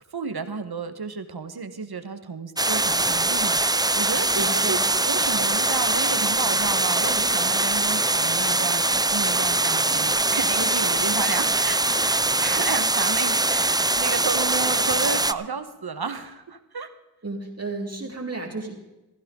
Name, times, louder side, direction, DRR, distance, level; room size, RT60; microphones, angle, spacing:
voice 1, 0.1-16.9, right 5 dB, 85° right, 10 dB, 1.3 m, -32 dB
sound 1, 2.6-15.3, right 2 dB, 10° right, 0.4 m, -22 dB
voice 2, 4.3-4.8 17.2-18.7, right 3 dB, 40° right, 0 dB, 3.6 m, -32 dB
15.5 x 15.0 x 3.8 m, 1.0 s
wide cardioid pair, 55°, 37 cm